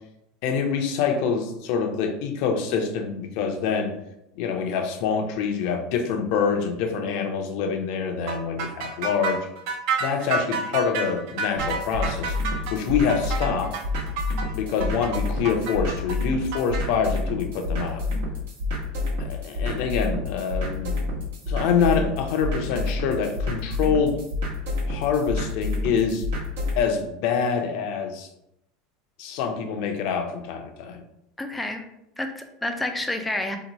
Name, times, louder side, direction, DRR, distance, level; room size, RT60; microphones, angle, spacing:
voice 1, 0.4-3.9 4.4-9.5 10.0-12.4 12.7-13.8 14.5-18.0 19.2-24.2 24.9-26.2 26.8-28.3 29.2-31.0, left 6 dB, 60° left, 4 dB, 0.5 m, -26 dB
sound 1, 8.3-16.8, right 4 dB, 60° right, 0.5 m, -30 dB
sound 2, 11.6-26.8, left 2 dB, 90° right, 1.1 m, -29 dB
voice 2, 31.4-31.8 32.2-33.6, left 1 dB, 5° left, 4 dB, 0.3 m, -29 dB
2.8 x 2.2 x 4.0 m, 0.82 s
supercardioid pair, 150°, 0 cm